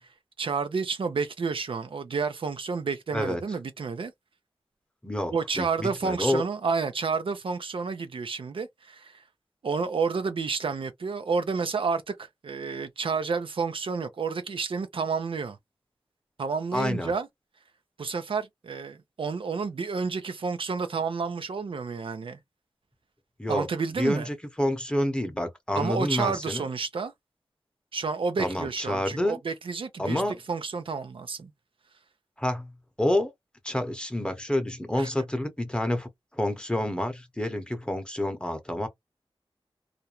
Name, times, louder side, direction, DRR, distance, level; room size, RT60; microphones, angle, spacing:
voice 1, 0.4-4.1 5.3-9.2 9.6-12.2 12.4-15.6 16.4-17.3 18.0-22.4 23.5-24.3 25.8-27.1 27.9-30.2 30.5-31.5 35.0-35.1, right 5 dB, 70° right, 0.4 m, -30 dB
voice 2, 5.0-6.4 16.7-17.1 23.4-23.7 24.0-26.6 28.4-29.4 30.0-30.4 32.4-32.7 33.0-33.3 33.6-38.9, left 1 dB, 10° left, 0.8 m, -28 dB
2.5 x 2.1 x 2.8 m
wide cardioid pair, 80°, 9 cm